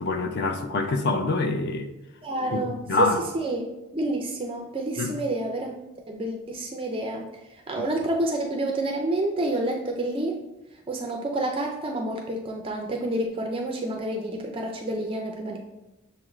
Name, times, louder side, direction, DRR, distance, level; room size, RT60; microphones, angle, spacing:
voice 1, 0.0-1.9 2.5-3.2 5.0-5.1, left 3 dB, 45° left, 6 dB, 0.4 m, -26 dB
voice 2, 2.2-5.7 6.1-7.3 7.7-10.4 10.9-15.6, right 1 dB, 25° right, 1 dB, 0.3 m, -29 dB
6.4 x 2.4 x 3.0 m, 0.97 s
head